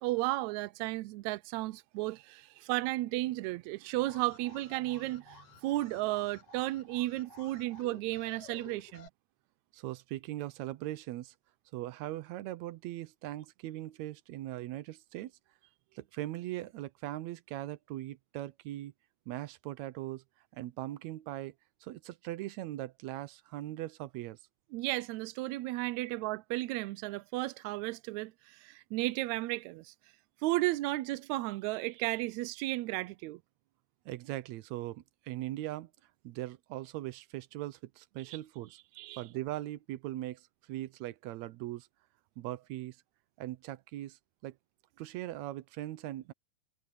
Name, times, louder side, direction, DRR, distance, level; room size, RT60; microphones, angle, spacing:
voice 1, 0.0-9.1 24.7-29.9 30.4-33.4 38.2-38.4 39.0-39.2, right 18 dB, 90° right, 1.6 m, -34 dB
Alarm, 4.0-9.1, left 4 dB, 65° left, 5.3 m, -54 dB
voice 2, 9.7-11.3 11.7-15.3 16.0-18.9 19.3-20.2 20.5-21.5 21.8-24.4 26.0-26.1 34.1-35.9 36.2-38.8 39.2-41.9 42.4-43.0 43.4-44.6 45.0-46.3, right 15 dB, 70° right, 1.8 m, -40 dB
omnidirectional pair, 3.8 m